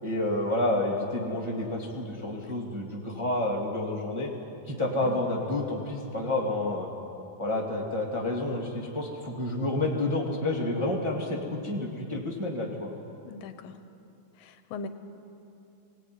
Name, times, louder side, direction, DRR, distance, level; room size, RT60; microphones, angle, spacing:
voice 1, 0.0-4.3 4.6-6.9 7.4-12.9, left 2 dB, 10° right, -2 dB, 1.6 m, -29 dB
voice 2, 13.2-13.8 14.4-14.9, left 3 dB, 75° left, 9 dB, 2.6 m, -40 dB
21.5 x 18.5 x 9.6 m, 2.8 s
omnidirectional pair, 4.1 m